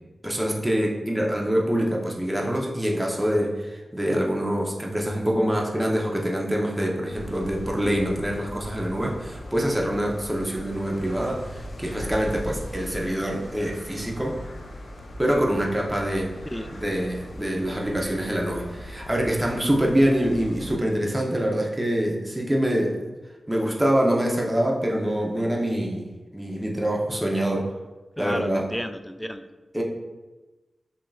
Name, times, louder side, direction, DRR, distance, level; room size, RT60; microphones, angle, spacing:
voice 1, 0.2-14.4 15.2-16.3 16.7-22.9 23.5-26.1 26.3-27.7 28.2-28.7 29.7-29.8, equal, 15° right, -1 dB, 1.0 m, -25 dB
sound 1, 7.1-20.8, left 1 dB, 70° left, 0.6 m, -39 dB
voice 2, 28.2-29.4, equal, 5° left, 8 dB, 0.4 m, -32 dB
7.5 x 2.9 x 2.5 m, 1.2 s
cardioid pair, 50°, 0 cm